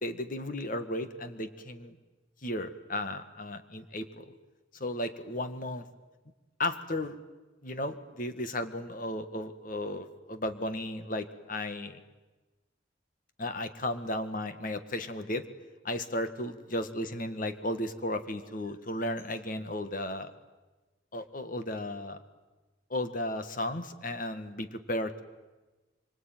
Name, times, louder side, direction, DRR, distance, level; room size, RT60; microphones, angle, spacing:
voice 1, 0.0-2.0 2.4-4.3 4.7-5.8 6.6-7.2 7.6-12.0 13.4-15.5 15.8-20.3 21.1-22.2 22.9-25.2, left 1 dB, 45° left, 9 dB, 1.7 m, -34 dB
25.5 x 24.5 x 9.2 m, 1.2 s
head